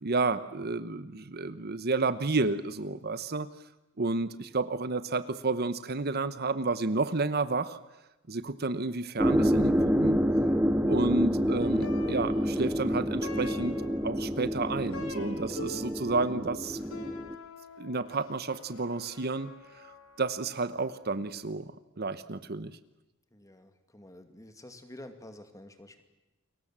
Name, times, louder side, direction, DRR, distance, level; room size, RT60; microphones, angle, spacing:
voice 1, 0.0-3.5 4.0-7.8 8.3-9.7 10.0-10.2 10.9-13.7 14.0-16.8 17.8-19.5 20.2-21.7 22.0-22.8, right 3 dB, 50° right, 13 dB, 1.0 m, -31 dB
sound 1, 9.2-17.3, equal, 10° right, 1.0 m, -28 dB
Plucked string instrument, 11.6-21.0, left 2 dB, 80° left, 3.5 m, -46 dB
voice 2, 23.3-26.0, left 1 dB, 15° left, 8 dB, 2.4 m, -49 dB
30.0 x 23.0 x 7.5 m, 0.98 s
head